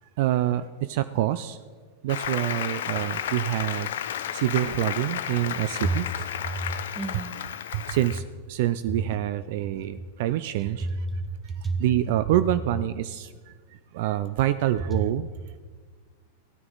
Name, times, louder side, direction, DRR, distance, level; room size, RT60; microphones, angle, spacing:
voice 1, 0.2-1.6 2.0-3.9 4.3-7.0 7.7-8.2 8.5-10.9 11.8-13.3 13.9-15.3, right 13 dB, 60° right, 13 dB, 0.4 m, -26 dB
Applause, 2.1-8.2, left 10 dB, 70° left, 0.6 m, -32 dB
voice 2, 6.4-7.3 11.1-11.8, right 2 dB, 5° right, 5 dB, 1.6 m, -31 dB
16.0 x 9.6 x 4.0 m, 1.5 s
hypercardioid pair, 100°, 0 cm